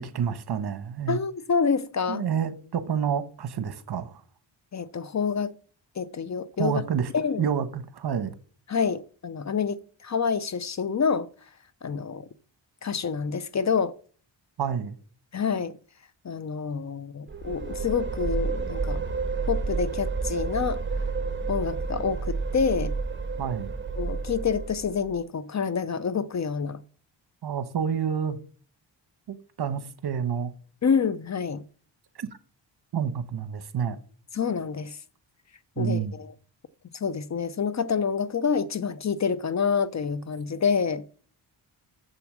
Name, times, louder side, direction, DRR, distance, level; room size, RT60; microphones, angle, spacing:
voice 1, 0.0-1.2 2.1-4.2 6.6-7.1 7.4-8.3 14.6-15.0 23.4-23.7 27.4-28.4 29.3-30.5 32.2-32.3 32.9-34.0 35.8-36.1, right 7 dB, 60° right, 1.0 m, -28 dB
voice 2, 1.1-2.2 4.7-5.5 6.0-6.8 7.1-7.5 8.7-11.3 11.8-12.3 12.8-13.9 15.3-15.8 16.2-19.0 19.5-20.8 21.5-22.9 24.0-26.8 30.8-31.6 34.3-35.0 35.8-36.3 36.9-41.0, left 6 dB, 40° left, 0.6 m, -27 dB
sound 1, 17.3-25.1, right 4 dB, 25° right, 1.3 m, -30 dB
7.0 x 7.0 x 6.1 m
cardioid pair, 90°, 45 cm